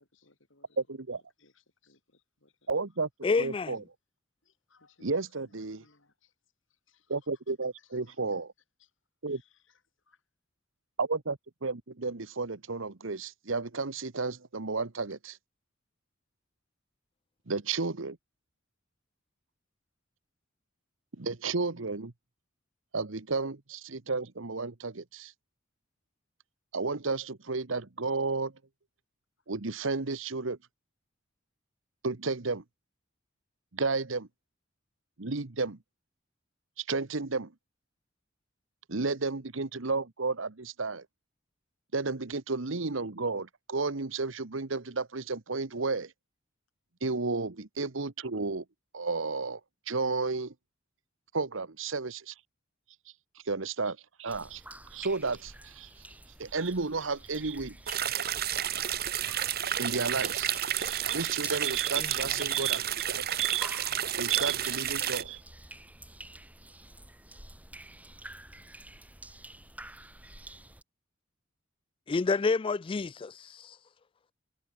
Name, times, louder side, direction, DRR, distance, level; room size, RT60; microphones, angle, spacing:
voice 1, 0.1-0.8 1.4-2.7 4.4-6.3 6.9-7.2 7.8-8.4 8.8-8.9 9.3-9.8 10.1-10.2, left 4 dB, 75° left, 6.6 m, -66 dB
voice 2, 0.8-1.2 2.7-3.1 3.4-3.8 5.0-5.8 7.1-8.5 9.2-9.4 11.0-15.4 17.5-18.1 21.2-22.1 22.9-25.3 26.7-28.5 29.5-30.6 32.0-32.6 33.7-34.3 35.2-35.8 36.8-37.5 38.9-41.1 41.9-46.1 47.0-48.6 48.9-49.6 49.9-50.5 51.3-52.3 53.4-54.6 54.9-55.9 56.4-57.8 59.8-63.7 64.1-65.4, right 4 dB, 80° right, 1.3 m, -32 dB
voice 3, 3.2-3.7 62.0-62.1 72.1-73.7, left 4 dB, 25° left, 0.3 m, -29 dB
sound 1, 54.3-70.8, right 1 dB, 10° right, 6.4 m, -49 dB
sound 2, 57.9-65.2, right 10 dB, 50° right, 1.4 m, -31 dB
head